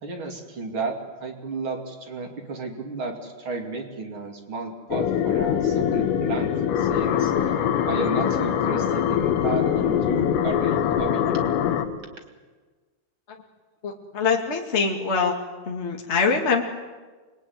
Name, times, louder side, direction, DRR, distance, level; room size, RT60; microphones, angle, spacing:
voice 1, 0.0-11.6, right 3 dB, 35° right, 3 dB, 2.4 m, -33 dB
sound 1, 4.9-11.9, left 9 dB, 85° left, 4.1 m, -23 dB
voice 2, 13.8-15.3 15.6-16.6, left 5 dB, 60° left, 0 dB, 0.6 m, -23 dB
27.0 x 21.5 x 9.5 m, 1.3 s
omnidirectional pair, 5.8 m